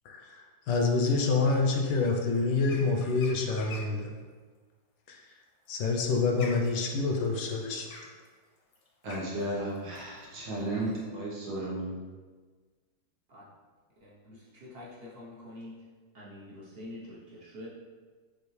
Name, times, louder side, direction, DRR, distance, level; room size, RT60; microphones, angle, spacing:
voice 1, 0.0-4.1 5.1-5.2 5.7-7.9, left 3 dB, 75° left, 2 dB, 1.3 m, -27 dB
sound 1, 2.6-4.1 5.4-11.0, left 3 dB, 60° left, 0.9 m, -47 dB
voice 2, 9.0-11.9, right 1 dB, 85° right, -6 dB, 1.9 m, -34 dB
voice 3, 14.0-15.7 16.1-17.7, left 1 dB, 50° right, -5 dB, 0.8 m, -46 dB
6.4 x 2.7 x 3.1 m, 1.4 s
omnidirectional pair, 2.0 m